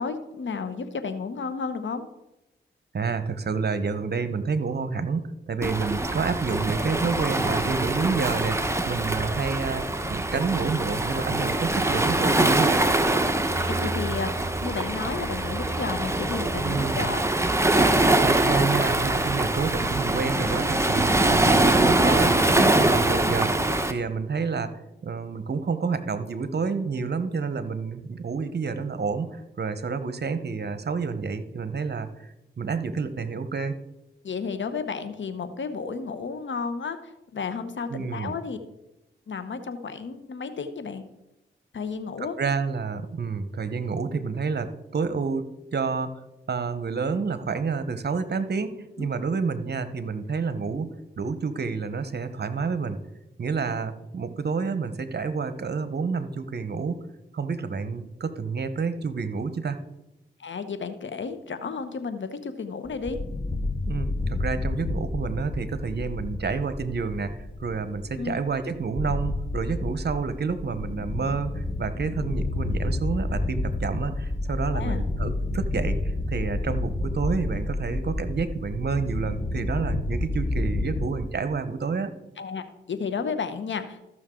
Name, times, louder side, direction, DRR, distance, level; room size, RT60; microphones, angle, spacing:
voice 1, 0.0-2.0 13.5-17.3 34.2-38.6 39.3-41.0 41.7-42.3 49.0-49.1 60.4-63.2 68.2-68.3 74.7-75.0 82.4-84.0, left 5 dB, 65° left, 10 dB, 1.1 m, -32 dB
voice 2, 2.9-12.9 16.6-17.1 18.2-24.7 25.0-33.7 37.9-38.4 42.2-46.2 46.5-53.0 53.4-57.0 57.3-59.8 63.9-82.1, right 5 dB, 55° right, 11 dB, 1.0 m, -29 dB
Waves surf, 5.6-23.9, right 2 dB, 15° right, 1.1 m, -23 dB
sound 1, 62.9-81.1, left 2 dB, 30° left, 1.1 m, -30 dB
14.0 x 6.3 x 3.8 m, 0.94 s
supercardioid pair, 40°, 21 cm